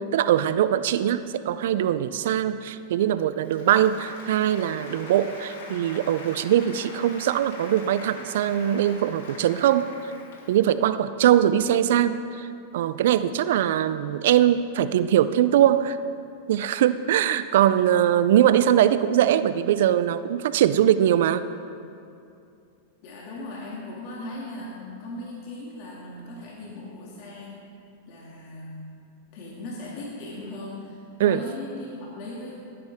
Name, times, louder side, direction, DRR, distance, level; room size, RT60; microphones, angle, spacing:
voice 1, 0.1-9.9 10.5-12.5 12.7-16.0 16.5-21.4 31.2-31.5, right 11 dB, 70° right, 13 dB, 0.4 m, -21 dB
Applause, 3.3-10.7, left 3 dB, 70° left, 2.0 m, -43 dB
voice 2, 23.0-27.6 28.1-29.0 29.3-32.5, left 1 dB, 55° left, -5 dB, 2.3 m, -38 dB
16.0 x 9.4 x 3.6 m, 2.5 s
hypercardioid pair, 115°, 0 cm